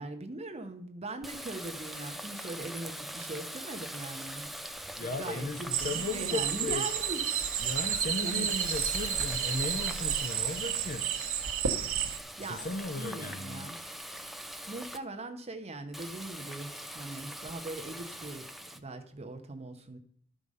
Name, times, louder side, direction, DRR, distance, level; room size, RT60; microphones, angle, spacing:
voice 1, 0.0-4.5 5.0-7.3 7.6-7.8 8.2-8.5 12.4-12.7 13.0-13.8 14.7-20.0, right 2 dB, 30° right, 0.8 m, -41 dB
Water tap faucet, 1.2-15.0 15.9-18.8, equal, ahead, 0.4 m, -42 dB
voice 2, 5.0-6.9 7.6-11.1 12.5-13.7, left 2 dB, 40° left, 0.6 m, -36 dB
sound 1, 5.7-12.2, right 8 dB, 65° right, 1.1 m, -31 dB
12.5 x 4.9 x 5.4 m
head